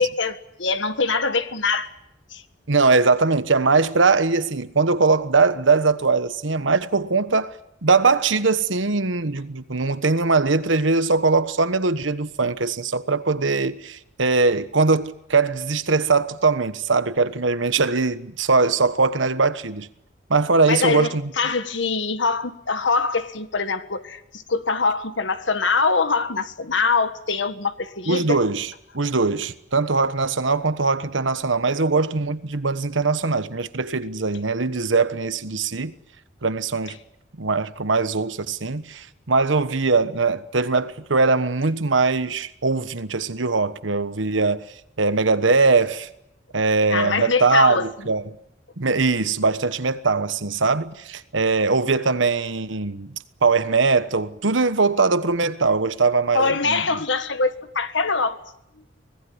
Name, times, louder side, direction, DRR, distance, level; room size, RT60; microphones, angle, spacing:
voice 1, 0.0-1.9 2.3-2.4 20.7-28.4 46.9-47.9 56.3-58.4, left 4 dB, 75° left, 1.6 m, -23 dB
voice 2, 2.7-7.5 7.8-19.9 20.3-21.2 28.1-35.9 36.4-37.0 37.4-44.7 45.0-46.1 46.5-48.4 48.8-53.1 53.4-57.0, right 4 dB, 90° right, 1.3 m, -21 dB
25.0 x 18.5 x 9.7 m
head